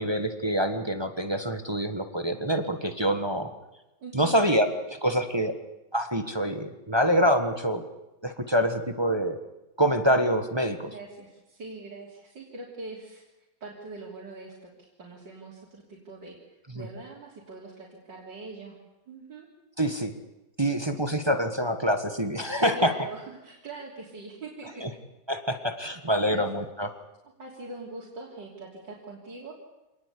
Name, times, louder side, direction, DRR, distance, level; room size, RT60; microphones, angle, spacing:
voice 1, 0.0-3.5 4.1-5.5 5.9-7.8 8.2-9.4 9.8-10.9 16.7-16.9 19.8-20.1 20.6-22.9 24.8-24.9 25.3-26.9, equal, 15° right, 7 dB, 1.3 m, -26 dB
voice 2, 4.0-4.4 10.8-13.2 13.6-18.8 19.1-19.5 22.7-24.9 26.3-26.5 27.4-29.5, right 3 dB, 90° right, -4 dB, 4.0 m, -42 dB
26.0 x 19.0 x 8.4 m, 0.99 s
omnidirectional pair, 1.9 m